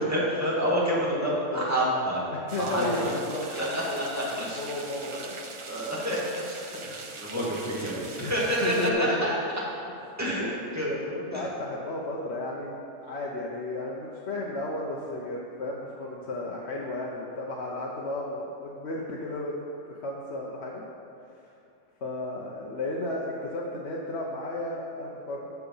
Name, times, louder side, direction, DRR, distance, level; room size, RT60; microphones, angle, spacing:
voice 1, 0.0-2.2 2.6-3.1 3.5-4.6 5.0-5.2 5.6-6.6 6.8-7.4 7.8-9.4 10.2-10.5 10.7-10.9 11.3-11.4, equal, 15° right, -7 dB, 2.2 m, -28 dB
voice 2, 1.0-1.7 2.3-4.3 4.6-5.4 7.3-7.8 8.2-8.3 8.6-9.3 10.1-10.2 10.9-19.5 19.9-20.8 22.0-25.5, left 2 dB, 65° left, -3 dB, 1.1 m, -34 dB
sound 1, 2.5-8.9, right 4 dB, 40° right, 0.4 m, -43 dB
13.5 x 4.8 x 5.5 m, 2.7 s
omnidirectional pair, 1.3 m